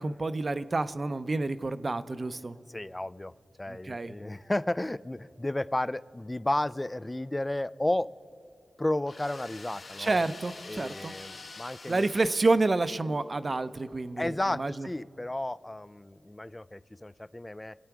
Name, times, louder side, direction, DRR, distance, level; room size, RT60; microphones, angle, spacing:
voice 1, 0.0-2.6 3.7-4.1 10.0-11.1 11.9-14.9, right 3 dB, 45° right, 12 dB, 0.6 m, -29 dB
voice 2, 2.7-3.3 3.6-8.1 8.8-10.3 10.7-12.1 14.2-17.8, left 1 dB, 20° left, 18 dB, 0.3 m, -32 dB
sound 1, 9.0-13.2, left 3 dB, 75° left, 1.6 m, -47 dB
25.5 x 8.9 x 4.7 m, 2.6 s
cardioid pair, 60°, 0 cm